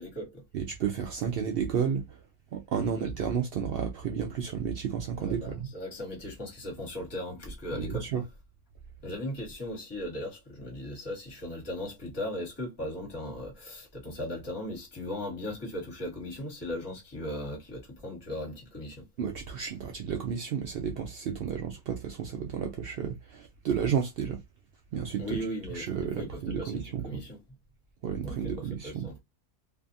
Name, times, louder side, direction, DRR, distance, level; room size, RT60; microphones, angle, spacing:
voice 1, 0.0-0.4 2.9-3.1 5.1-8.0 9.0-19.0 25.2-25.9 26.2-27.4 28.2-29.2, left 1 dB, 20° left, 1.3 m, -38 dB
voice 2, 0.5-2.2 2.5-5.7 7.7-8.2 19.2-24.4 24.9-25.4 25.7-27.2 28.0-29.1, right 7 dB, 75° right, 0.5 m, -32 dB
2.6 x 2.5 x 2.5 m
omnidirectional pair, 1.5 m